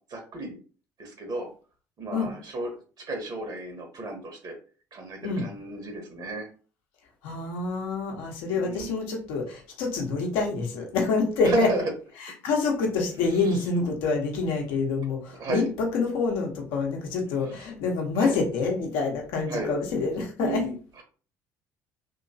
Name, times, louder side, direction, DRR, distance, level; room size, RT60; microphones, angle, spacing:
voice 1, 0.1-0.6 1.0-1.5 2.0-4.6 4.9-6.5 8.5-8.9 11.4-11.8 13.3-13.6 15.4-15.7 17.5-17.7 18.2-18.4 19.5-19.7 20.4-21.0, right 2 dB, 50° right, 3 dB, 1.1 m, -33 dB
voice 2, 7.2-11.7 12.4-20.6, left 4 dB, 75° left, 1 dB, 1.1 m, -27 dB
3.0 x 2.9 x 2.7 m, 0.38 s
hypercardioid pair, 60°, 9 cm